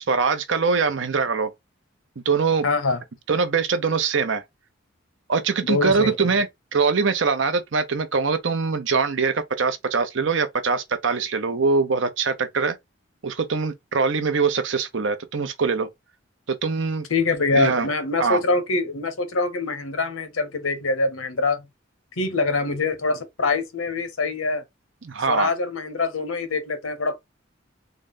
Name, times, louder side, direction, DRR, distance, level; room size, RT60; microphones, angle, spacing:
voice 1, 0.0-1.5 2.3-2.7 3.3-4.4 5.3-12.8 13.2-15.9 16.5-17.1 17.5-17.9 18.2-18.4 25.0-25.5, right 5 dB, 65° right, 0.6 m, -23 dB
voice 2, 2.6-3.0 5.7-6.2 17.1-21.6 22.2-24.6 25.3-27.2, left 3 dB, 90° left, 1.0 m, -24 dB
3.8 x 2.1 x 3.6 m
head